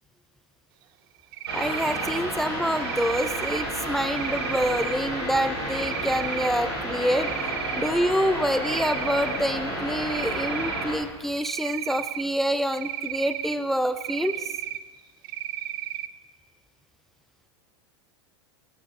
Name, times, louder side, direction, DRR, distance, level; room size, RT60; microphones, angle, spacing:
Cricket, 1.3-2.2 2.8-3.6 4.1-4.9 5.7-6.5 6.9-7.9 8.3-9.4 10.0-10.8 11.4-12.2 12.7-13.6 14.0-14.8 15.2-16.1, right 13 dB, 55° right, 0.5 m, -33 dB
voice 1, 1.5-7.3 7.8-14.5, equal, ahead, 13 dB, 0.4 m, -27 dB
sound 1, 1.5-10.9, equal, 75° right, 3.2 m, -31 dB
20.5 x 7.3 x 3.8 m, 1.3 s
figure-of-eight pair, 85°, 14 cm